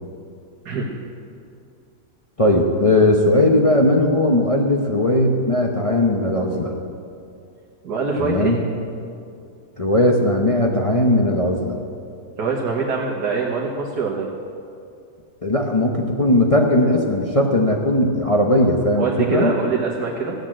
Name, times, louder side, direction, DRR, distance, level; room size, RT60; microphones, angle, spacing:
voice 1, 2.4-6.7 8.2-8.6 9.8-11.8 15.4-19.5, left 1 dB, 25° left, 0 dB, 0.8 m, -18 dB
voice 2, 7.8-8.5 12.4-14.3 19.0-20.3, right 4 dB, 80° right, -2 dB, 1.8 m, -23 dB
15.0 x 8.0 x 7.5 m, 2.4 s
omnidirectional pair, 1.7 m